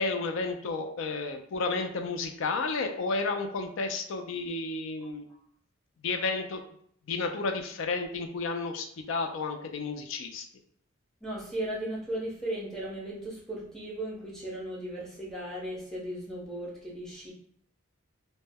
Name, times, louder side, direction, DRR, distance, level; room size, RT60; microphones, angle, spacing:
voice 1, 0.0-5.3 6.0-6.6 7.1-10.5, left 3 dB, 70° left, 6 dB, 0.4 m, -32 dB
voice 2, 11.2-17.3, right 1 dB, ahead, -5 dB, 0.7 m, -36 dB
2.1 x 2.0 x 3.4 m, 0.65 s
head